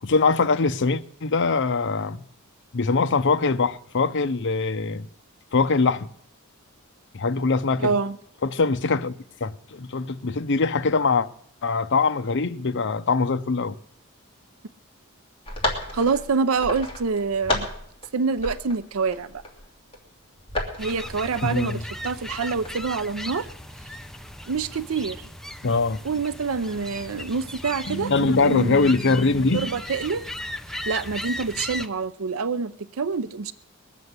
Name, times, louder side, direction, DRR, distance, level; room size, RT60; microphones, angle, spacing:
voice 1, 0.0-2.2 2.7-5.1 5.5-6.1 7.1-7.9 8.4-9.1 9.4-11.3 11.6-13.8 21.4-21.8 25.6-26.0 28.1-29.7, left 4 dB, 55° left, 0.7 m, -22 dB
voice 2, 7.8-8.2 15.9-17.7 18.1-19.4 20.8-23.5 24.5-25.3 26.0-28.8 29.5-30.2 30.9-33.5, right 5 dB, 70° right, 0.6 m, -26 dB
sound 1, 15.5-18.1 18.4-20.0 20.4-21.7 22.1-22.9, left 2 dB, 25° left, 2.8 m, -32 dB
sound 2, 20.8-31.9, left 1 dB, ahead, 0.5 m, -37 dB
sound 3, 26.5-29.8, right 1 dB, 85° left, 1.1 m, -36 dB
21.5 x 7.3 x 8.1 m
head